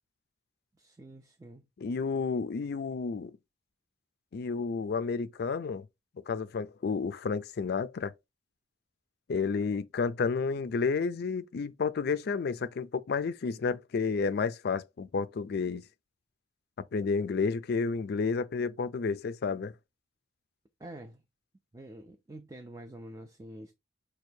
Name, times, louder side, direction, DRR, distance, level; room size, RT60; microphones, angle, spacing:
voice 1, 0.8-1.6 20.8-21.2 21.7-23.7, right 1 dB, 20° right, 0.4 m, -47 dB
voice 2, 1.8-3.4 4.3-5.9 6.3-8.1 9.3-15.8 16.8-19.7, left 5 dB, 55° left, 0.4 m, -31 dB
6.2 x 2.3 x 2.7 m
head